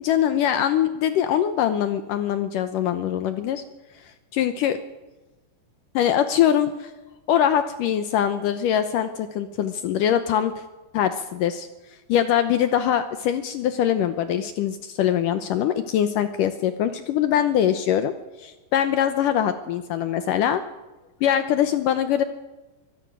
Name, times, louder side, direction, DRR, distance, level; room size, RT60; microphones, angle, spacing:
voice 1, 0.0-3.6 4.3-4.8 5.9-6.9 7.3-10.5 10.9-11.7 12.1-20.6 21.2-22.2, left 10 dB, 80° left, 10 dB, 1.9 m, -23 dB
24.0 x 17.5 x 6.2 m, 1.1 s
omnidirectional pair, 5.0 m